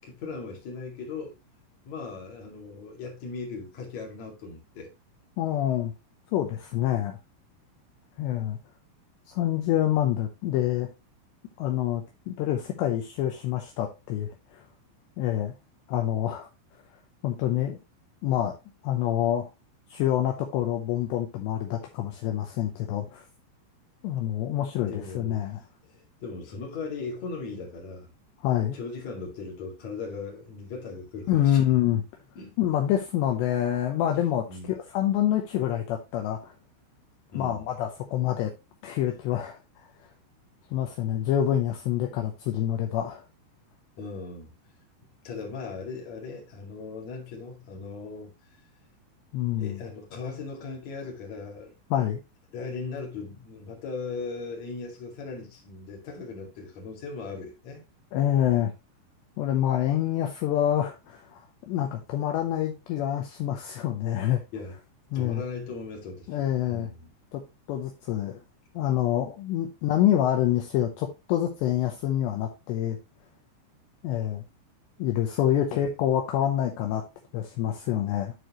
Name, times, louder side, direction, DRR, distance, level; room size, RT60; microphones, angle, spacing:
voice 1, 0.0-1.4 1.8-4.9 24.9-25.4 25.8-28.1 28.7-31.6 32.3-32.5 34.5-34.7 37.3-37.7 44.0-44.5 45.2-48.3 49.6-51.7 52.5-57.8 64.5-64.8 65.1-67.1 75.7-75.8, left 4 dB, 45° left, 2.7 m, -38 dB
voice 2, 5.4-5.9 6.3-7.2 8.2-8.6 9.4-10.9 11.6-14.3 15.2-15.5 15.9-16.5 17.2-17.8 18.2-18.5 18.8-19.5 19.9-23.2 24.0-25.6 28.4-28.8 31.3-32.0 32.6-36.5 37.3-38.5 38.8-39.6 40.7-43.2 49.3-49.8 51.9-52.2 58.1-58.7 59.4-61.4 61.7-64.4 65.1-65.4 66.3-66.9 67.3-67.4 67.7-68.4 68.8-73.0 74.0-74.4 75.0-77.0 77.3-78.3, left 11 dB, 80° left, 2.6 m, -26 dB
11.5 x 4.9 x 3.0 m
omnidirectional pair, 5.8 m